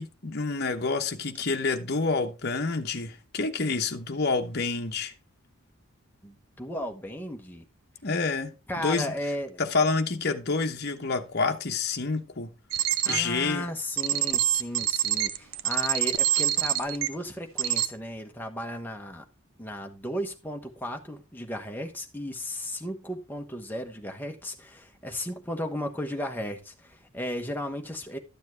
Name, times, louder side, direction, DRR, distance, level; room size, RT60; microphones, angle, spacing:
voice 1, 0.0-5.1 8.0-9.1 9.6-12.5 13.1-13.7, left 4 dB, 50° left, 0.9 m, -28 dB
voice 2, 6.2-7.6 8.7-9.6 13.0-19.2 19.6-28.2, left 1 dB, 10° left, 1.1 m, -35 dB
sound 1, 12.7-13.2 14.0-17.1 17.6-17.9, right 11 dB, 65° right, 0.7 m, -25 dB
12.0 x 7.2 x 3.3 m
head